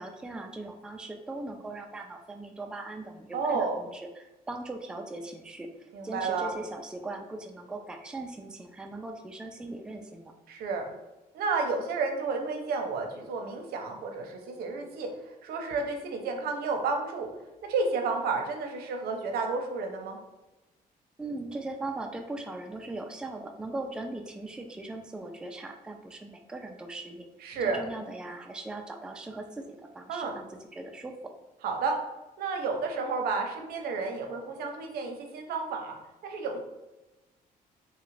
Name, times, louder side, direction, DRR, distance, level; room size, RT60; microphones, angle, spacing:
voice 1, 0.0-10.3 21.2-27.3 27.6-31.3, right 2 dB, 5° right, 3 dB, 0.3 m, -39 dB
voice 2, 3.3-3.8 5.9-6.5 10.5-10.8 11.3-17.3 17.7-20.2 27.4-27.8 30.1-30.3 31.6-32.0 32.4-35.9 36.2-36.6, right 4 dB, 80° right, 3 dB, 0.6 m, -31 dB
2.9 x 2.4 x 3.1 m, 1.0 s
cardioid pair, 100°, 16 cm